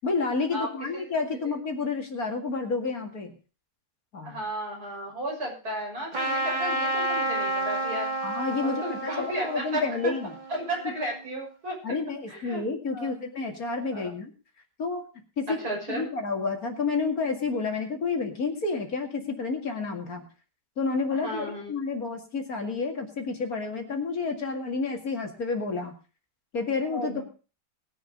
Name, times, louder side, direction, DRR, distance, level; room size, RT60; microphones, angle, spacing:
voice 1, 0.0-3.3 4.1-4.4 8.2-10.3 11.8-14.3 14.8-15.1 15.4-20.3 20.8-25.9 26.5-27.2, left 4 dB, 60° left, 4 dB, 2.7 m, -30 dB
voice 2, 4.2-8.1 8.6-9.8 10.5-11.8 12.3-12.6 12.9-13.1 13.9-14.1 15.6-16.0 21.1-21.7 26.9-27.2, right 1 dB, 65° right, -2 dB, 6.7 m, -34 dB
Trumpet, 6.1-11.2, right 1 dB, 30° right, 1.7 m, -30 dB
20.0 x 7.2 x 5.3 m, 0.36 s
omnidirectional pair, 1.8 m